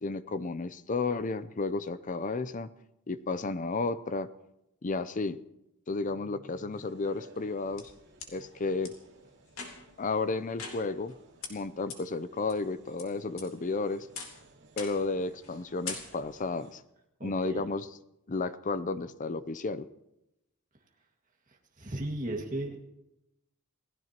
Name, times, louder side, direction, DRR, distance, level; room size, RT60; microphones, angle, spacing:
voice 1, 0.0-2.7 3.1-4.3 4.8-5.4 5.9-7.9 8.3-8.9 10.0-11.1 11.5-14.1 14.8-16.8 17.2-18.0 18.3-19.9, left 3 dB, 35° left, 15 dB, 0.5 m, -32 dB
sound 1, 6.7-16.7, right 3 dB, 55° right, 2.7 m, -59 dB
sound 2, 7.3-8.3 8.8-8.9 9.5-10.0 10.6-11.1 11.4-11.5 11.9-12.0 12.5-13.0 13.4-13.8 14.1-14.4 14.8-15.1 15.4-15.6 15.8-16.4, left 5 dB, 65° left, 3.0 m, -42 dB
voice 2, 17.2-17.6 21.8-22.9, right 1 dB, 35° right, 0 dB, 2.0 m, -35 dB
28.0 x 17.0 x 2.9 m, 0.90 s
head